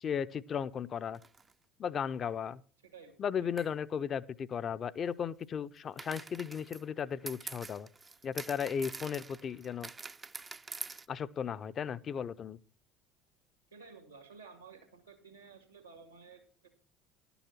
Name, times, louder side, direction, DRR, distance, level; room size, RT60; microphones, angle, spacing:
voice 1, 0.0-1.2 1.8-2.6 3.2-7.9 8.2-9.9 11.1-12.6, left 7 dB, 35° left, 14 dB, 0.5 m, -35 dB
sound 1, 1.1-1.5 3.6-3.7 6.0-11.1, right 4 dB, 20° right, 0.4 m, -45 dB
voice 2, 2.8-3.5 13.7-16.7, right 5 dB, 85° right, 7 dB, 2.0 m, -54 dB
11.0 x 7.1 x 6.0 m, 0.39 s
figure-of-eight pair, 65°, 0 cm